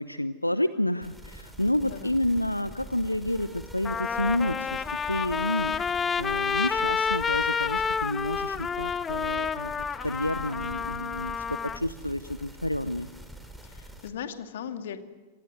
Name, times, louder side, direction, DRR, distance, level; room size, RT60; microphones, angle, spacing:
voice 1, 0.0-9.7 10.0-13.1, left 1 dB, 85° left, 15 dB, 0.7 m, -30 dB
sound 1, 1.0-14.1, right 1 dB, ahead, 4.3 m, -45 dB
voice 2, 1.8-2.1 13.6-15.0, left 8 dB, 60° left, 8 dB, 2.4 m, -38 dB
Trumpet, 3.1-3.2 3.8-11.8, left 6 dB, 20° left, 1.1 m, -29 dB
27.5 x 24.5 x 7.9 m, 1.3 s
figure-of-eight pair, 90°, 0 cm